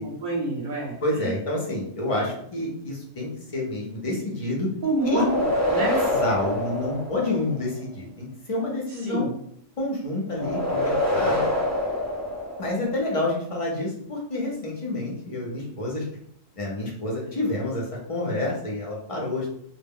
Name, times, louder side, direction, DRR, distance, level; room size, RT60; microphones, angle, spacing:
voice 1, 0.0-1.4 2.2-2.3 4.8-6.0 8.9-9.3, right 2 dB, 50° right, -3 dB, 0.7 m, -28 dB
voice 2, 1.0-4.7 5.1-5.3 5.9-9.3 9.8-11.5 12.6-16.1 16.6-19.5, left 2 dB, 45° left, -3 dB, 0.4 m, -28 dB
sound 1, 5.0-7.7 10.3-13.0, left 1 dB, 25° right, 0.3 m, -26 dB
2.1 x 2.1 x 3.5 m, 0.67 s
omnidirectional pair, 1.3 m